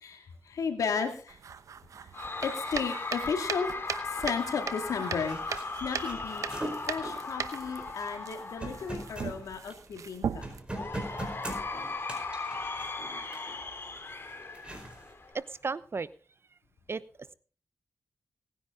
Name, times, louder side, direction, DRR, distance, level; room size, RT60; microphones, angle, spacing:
voice 1, 0.0-1.4 2.4-3.7 4.0-6.6 6.9-10.4, left 6 dB, 80° left, 5 dB, 2.3 m, -34 dB
sound 1, 1.3-10.6, right 6 dB, 70° right, 0.9 m, -39 dB
Cheering / Crowd, 2.1-9.4 10.7-15.5, left 3 dB, 45° left, 2.6 m, -38 dB
sound 2, 4.6-4.7 4.9-10.1 10.4-13.6 14.3-15.1, right 1 dB, 20° right, 4.6 m, -41 dB
voice 2, 15.3-16.1 16.9-17.3, right 4 dB, 45° right, 16 dB, 0.8 m, -35 dB
18.0 x 10.0 x 3.8 m, 0.40 s
cardioid pair, 50°, 6 cm